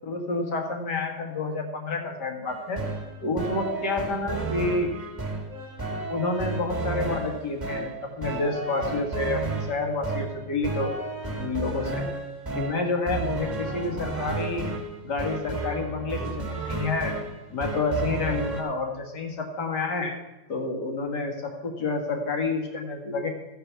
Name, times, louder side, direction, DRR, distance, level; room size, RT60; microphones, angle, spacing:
voice 1, 0.0-2.8 3.2-4.9 6.1-10.9 11.4-12.0 12.5-14.7 15.0-17.2 17.5-20.1 20.5-23.3, left 3 dB, 65° left, 2 dB, 2.4 m, -29 dB
sound 1, 2.5-18.6, right 3 dB, 10° right, 2.3 m, -32 dB
14.5 x 6.9 x 6.1 m, 1.1 s
omnidirectional pair, 2.0 m